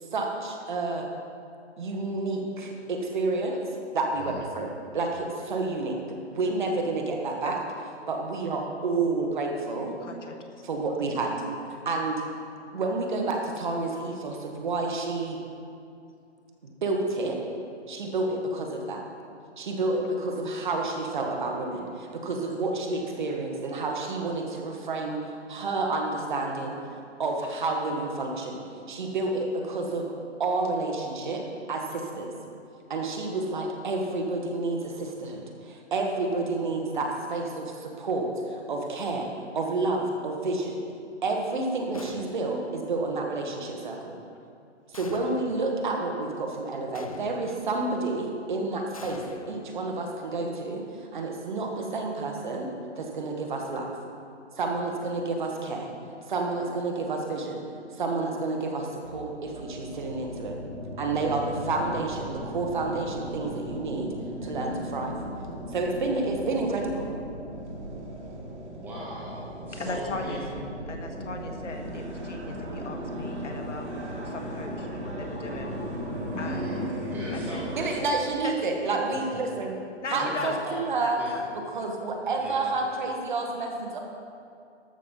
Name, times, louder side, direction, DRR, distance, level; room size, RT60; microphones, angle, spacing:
voice 1, 0.1-1.1 1.8-3.6 3.9-6.0 6.3-7.6 8.1-10.0 10.6-11.3 11.8-12.2 12.7-15.4 16.6-17.4 17.9-19.0 19.6-26.8 27.2-28.6 28.9-30.1 30.4-32.3 32.9-39.3 39.5-40.8 41.2-44.2 44.9-52.7 53.0-53.9 54.6-55.9 56.3-57.6 58.0-60.6 61.0-64.1 64.4-65.1 65.7-67.1 77.8-79.7 80.1-81.2 81.7-84.0, right 3 dB, 40° right, 2 dB, 1.5 m, -29 dB
voice 2, 10.0-10.4 64.4-64.5 69.7-70.4 70.9-73.9 74.2-75.8 76.4-76.8 77.3-77.6 78.4-78.6 78.9-79.1 80.0-80.6 81.0-81.4, left 3 dB, 90° left, 3 dB, 1.7 m, -38 dB
sound 1, 41.9-42.7 44.9-45.7 46.9-47.7 48.9-50.2, left 3 dB, 30° left, 0.4 m, -45 dB
sound 2, 59.0-77.9, equal, 75° right, 2.7 m, -36 dB
voice 3, 68.7-70.5 76.3-78.0 79.1-79.2 80.1-80.8 81.2-81.3 82.4-82.6, equal, 5° right, -6 dB, 1.2 m, -39 dB
13.0 x 6.5 x 5.3 m, 2.5 s
hypercardioid pair, 165°, 35 cm